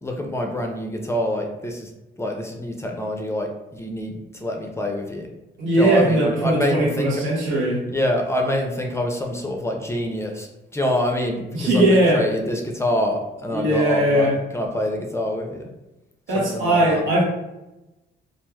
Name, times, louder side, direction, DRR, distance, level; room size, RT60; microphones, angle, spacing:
voice 1, 0.0-1.9 2.2-5.3 5.8-7.2 7.9-14.3 14.5-15.7 16.3-17.0, left 1 dB, 15° left, 2 dB, 0.4 m, -26 dB
voice 2, 5.6-7.8 11.5-12.2 13.5-14.3 16.3-17.2, right 1 dB, 85° right, -3 dB, 0.9 m, -19 dB
3.2 x 2.4 x 2.2 m, 0.98 s
cardioid pair, 90°, 20 cm